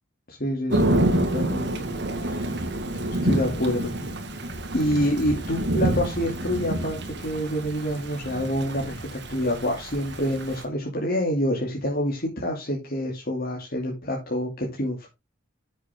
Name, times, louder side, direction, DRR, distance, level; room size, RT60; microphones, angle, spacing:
voice 1, 0.3-0.9 1.3-1.9 2.2-2.5 3.2-4.1 4.7-15.1, equal, 50° left, -2 dB, 2.7 m, -27 dB
Thunder / Rain, 0.7-10.6, right 1 dB, 60° right, 1.8 m, -28 dB
10.5 x 7.3 x 3.7 m, 0.24 s
head